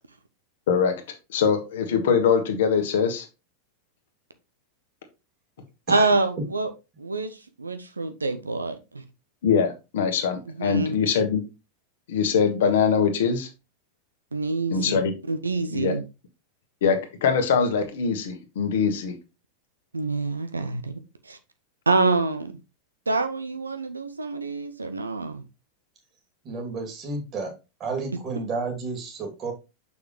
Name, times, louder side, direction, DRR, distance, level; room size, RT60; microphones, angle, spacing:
voice 1, 1.3-3.2 9.4-11.4 12.1-13.5 14.7-15.1 15.7-15.9 16.8-19.1, left 6 dB, 55° left, 1.4 m, -22 dB
voice 2, 5.9-6.7 7.0-9.0 10.6-10.9 14.3-16.0 19.9-20.9 21.2-21.4 21.9-22.6 23.1-25.4, right 3 dB, 80° right, 0.7 m, -26 dB
voice 3, 26.4-27.5 27.8-29.5, right 4 dB, 30° right, 2.6 m, -31 dB
6.5 x 5.6 x 3.1 m
figure-of-eight pair, 90°, 0 cm